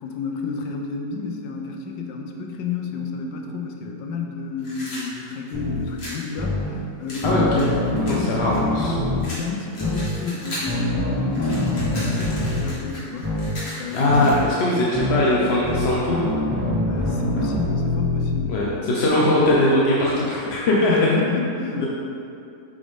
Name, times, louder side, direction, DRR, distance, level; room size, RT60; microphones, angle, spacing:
voice 1, 0.0-8.6 9.1-14.3 16.9-18.6 20.6-21.9, left 4 dB, 85° left, 2 dB, 1.4 m, -30 dB
sound 1, 4.6-6.2 7.1-8.9 9.2-10.8 11.1-14.7, equal, 35° left, 1.7 m, -36 dB
sound 2, 5.5-5.8 6.4-6.6 7.2-9.2 9.8-10.1 10.7-12.6 13.2-13.5 14.1-14.4 14.9-15.2 15.6-18.4, left 1 dB, 15° right, 0.5 m, -24 dB
voice 2, 7.2-7.6 8.2-8.9 13.9-16.2 18.5-21.1 21.7-21.9, left 1 dB, 55° left, -5 dB, 0.7 m, -20 dB
7.0 x 5.2 x 3.5 m, 2.6 s
omnidirectional pair, 1.9 m